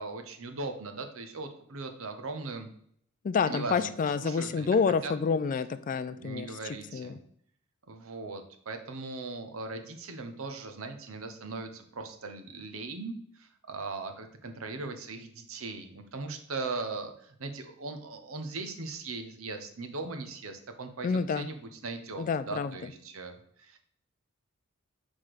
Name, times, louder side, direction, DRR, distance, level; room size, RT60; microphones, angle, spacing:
voice 1, 0.0-2.7 3.5-3.9 4.2-4.7 5.0-5.1 6.1-7.2 7.9-23.8, right 3 dB, 70° right, 7 dB, 0.9 m, -39 dB
voice 2, 3.2-6.5 6.9-7.2 21.0-21.5 22.2-22.9, left 5 dB, 40° left, 11 dB, 0.3 m, -28 dB
6.0 x 4.2 x 4.9 m, 0.65 s
head